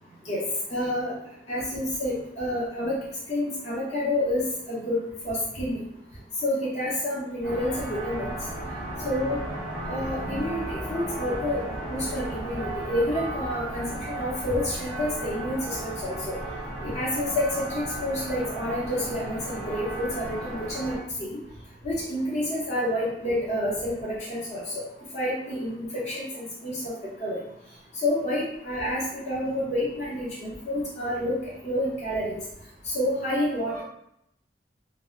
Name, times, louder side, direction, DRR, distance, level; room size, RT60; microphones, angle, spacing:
voice 1, 0.7-1.1 1.5-3.0 3.3-5.8 6.4-8.3 9.0-9.4 9.9-11.6 11.9-16.3 16.8-21.4 21.8-24.8 25.1-26.9 27.2-27.4 28.0-31.4 31.6-32.4 32.9-33.8, left 1 dB, 35° left, -8 dB, 0.7 m, -29 dB
sound 1, 7.4-21.0, right 1 dB, 5° left, 0.8 m, -35 dB
2.1 x 2.0 x 3.7 m, 0.75 s
head